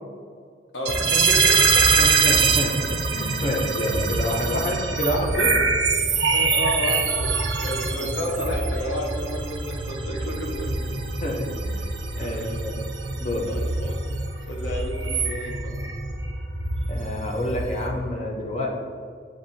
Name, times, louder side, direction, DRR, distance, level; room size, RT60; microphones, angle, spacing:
voice 1, 0.7-2.0 6.3-11.0 12.2-12.5 13.5-14.0 14.5-15.7, left 1 dB, 75° left, 0 dB, 0.7 m, -31 dB
sound 1, 0.9-17.9, right 4 dB, 60° right, 0.5 m, -24 dB
voice 2, 1.9-5.6 8.0-8.1 11.2-11.8 12.2-12.7 13.2-13.5 16.9-18.7, left 1 dB, 35° left, 1 dB, 0.5 m, -28 dB
6.9 x 2.6 x 2.6 m, 2.2 s
head